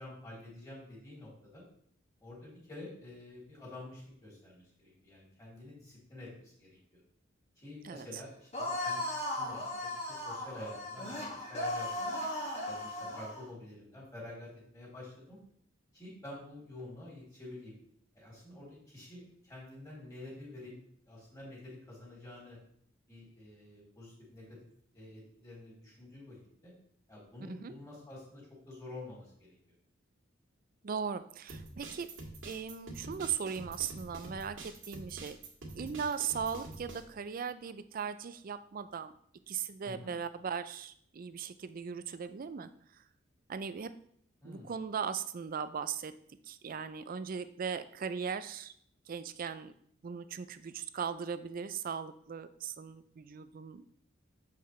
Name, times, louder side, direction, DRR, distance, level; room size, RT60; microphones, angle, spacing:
voice 1, 0.0-1.6 2.2-7.0 7.6-9.0 9.4-12.1 12.6-15.4 15.9-17.7 18.1-20.7 21.0-22.6 23.1-24.6 24.9-26.4 26.6-26.7 27.1-29.6 39.8-40.1 44.4-44.7, left 1 dB, 20° left, -5 dB, 3.2 m, -49 dB
sound 1, 8.5-13.4, left 1 dB, 35° left, 1.8 m, -37 dB
voice 2, 30.8-32.1 32.4-35.4 35.8-39.1 39.5-43.0 43.5-43.9 44.4-46.1 46.4-48.7 49.1-49.7 50.0-54.0, right 6 dB, 45° right, 12 dB, 0.4 m, -38 dB
sound 2, 31.5-37.0, right 2 dB, 80° right, 1.8 m, -46 dB
7.4 x 5.8 x 3.2 m, 0.64 s
head